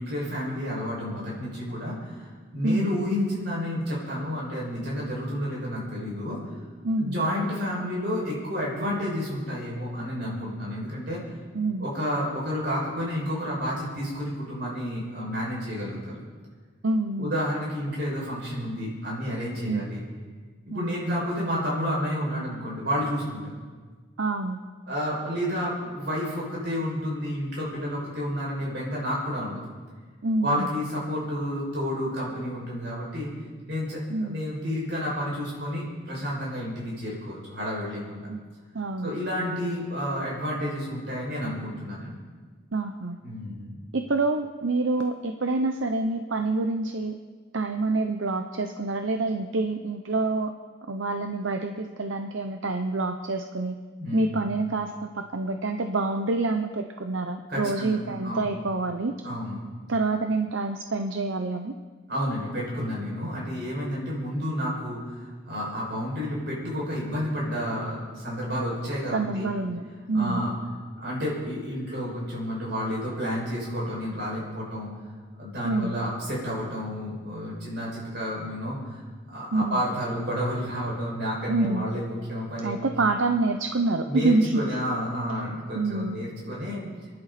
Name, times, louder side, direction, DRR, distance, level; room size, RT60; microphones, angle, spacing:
voice 1, 0.0-6.4 7.0-11.2 11.8-16.0 17.2-20.0 20.7-23.5 24.9-29.6 30.4-33.3 33.7-38.2 39.0-42.2 43.2-43.8 54.0-54.4 57.5-58.0 58.2-58.5 59.2-59.6 62.1-69.5 70.1-70.5 71.0-74.9 75.4-79.0 79.3-82.9 84.1-86.8, equal, 55° right, -5 dB, 6.1 m, -30 dB
voice 2, 6.8-7.3 11.5-11.9 16.8-17.3 19.7-19.9 20.7-21.0 24.2-24.6 30.2-30.7 34.1-34.4 38.3-38.4 38.7-39.1 42.7-43.2 43.9-47.2 47.5-50.5 50.9-53.8 54.1-59.1 59.9-61.7 69.1-69.8 70.1-70.4 75.6-75.9 79.5-79.8 81.5-81.9 82.6-84.8 85.8-86.2, right 3 dB, 80° right, 6 dB, 0.8 m, -27 dB
27.5 x 11.0 x 4.3 m, 1.5 s
head